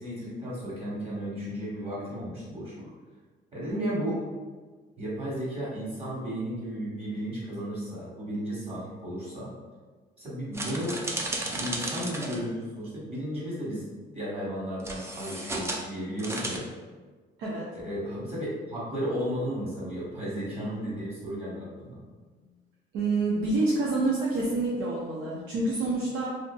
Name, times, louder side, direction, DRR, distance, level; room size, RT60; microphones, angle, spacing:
voice 1, 0.0-2.9 3.5-4.2 5.0-9.5 10.2-11.0 11.4-13.8 14.1-16.7 17.8-22.0, equal, 30° right, -7 dB, 1.3 m, -34 dB
sound 1, 10.5-12.4 14.8-15.8 16.2-16.6, right 2 dB, 15° right, 0.4 m, -34 dB
voice 2, 22.9-26.3, right 2 dB, 85° right, -5 dB, 0.5 m, -27 dB
2.5 x 2.5 x 2.3 m, 1.4 s
cardioid pair, 90°, 20 cm